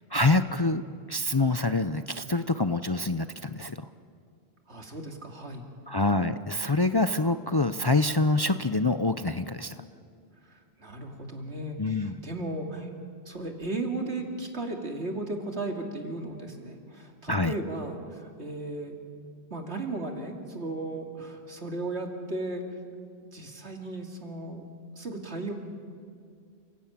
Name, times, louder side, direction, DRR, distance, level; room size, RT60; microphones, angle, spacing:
voice 1, 0.1-0.8 1.1-3.9 5.9-9.7 11.8-12.2 17.3-17.5, left 2 dB, 30° left, 10 dB, 0.5 m, -26 dB
voice 2, 4.7-5.7 10.5-12.9 13.2-19.0 19.5-22.6 23.3-24.6 25.0-25.5, right 2 dB, 85° right, 2 dB, 2.9 m, -35 dB
29.5 x 17.0 x 8.7 m, 2.2 s
omnidirectional pair, 1.1 m